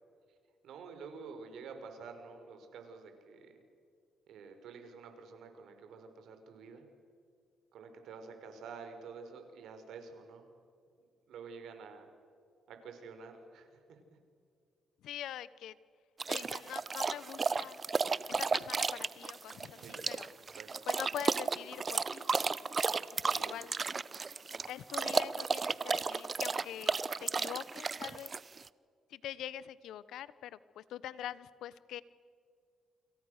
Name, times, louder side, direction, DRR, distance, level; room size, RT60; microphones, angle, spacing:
voice 1, 0.6-3.6 4.3-6.8 7.7-10.5 11.0-12.1 12.7-14.0 19.8-20.1 20.5-20.7 23.2-23.6, right 5 dB, 75° right, 6 dB, 4.9 m, -49 dB
voice 2, 15.0-15.7 16.3-17.8 18.3-19.8 20.1-20.3 20.9-22.3 23.3-23.7 24.7-28.3 29.1-32.0, left 11 dB, 80° left, 17 dB, 0.9 m, -44 dB
sound 1, 16.2-28.7, right 4 dB, 35° right, 0.8 m, -33 dB
29.0 x 27.0 x 6.6 m, 2.3 s
cardioid pair, 90°, 0 cm